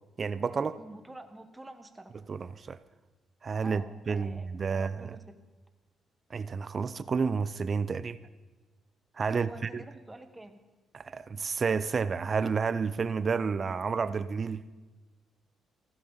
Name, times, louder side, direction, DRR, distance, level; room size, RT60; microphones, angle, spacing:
voice 1, 0.2-0.8 2.3-2.8 3.4-5.2 6.3-8.2 9.2-9.8 10.9-14.6, right 5 dB, 40° right, 15 dB, 0.6 m, -30 dB
voice 2, 0.8-2.1 3.6-5.3 9.3-10.6, right 2 dB, 10° right, 8 dB, 1.5 m, -47 dB
15.5 x 14.5 x 5.6 m, 1.2 s
cardioid pair, 90°, 0 cm